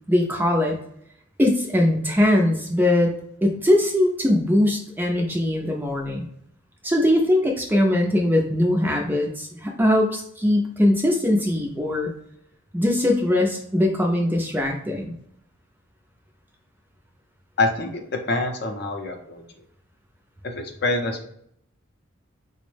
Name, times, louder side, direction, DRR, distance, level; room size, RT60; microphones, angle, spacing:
voice 1, 0.1-0.8 1.4-3.1 3.4-6.3 6.8-12.1 12.7-15.1, left 1 dB, 10° right, 1 dB, 0.4 m, -21 dB
voice 2, 17.6-17.9 18.3-19.4 20.4-21.2, left 2 dB, 50° left, 4 dB, 0.5 m, -25 dB
4.3 x 2.0 x 3.2 m, 0.70 s
head